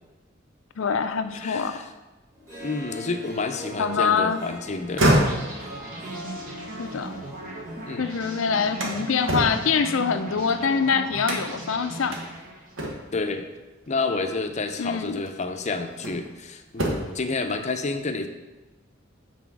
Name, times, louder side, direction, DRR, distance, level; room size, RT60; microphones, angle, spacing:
voice 1, 0.8-1.8 3.8-4.4 6.8-7.2 8.0-12.2 14.8-15.2, left 5 dB, 80° left, 9 dB, 0.5 m, -24 dB
voice 2, 1.3-1.9 2.6-5.1 7.9-8.0 13.1-13.5 13.9-18.3, left 3 dB, 35° left, 6 dB, 0.6 m, -29 dB
Harp, 2.3-9.8, left 1 dB, 20° right, 1.9 m, -43 dB
sound 1, 4.8-7.9 8.3-10.7 11.2-11.7 12.1-12.2 12.8-13.3 14.5-14.7 15.2-16.4 16.7-17.3, right 1 dB, 80° right, 1.3 m, -27 dB
sound 2, 5.2-12.8, right 2 dB, 45° right, 1.3 m, -38 dB
6.1 x 4.2 x 6.0 m, 1.1 s
head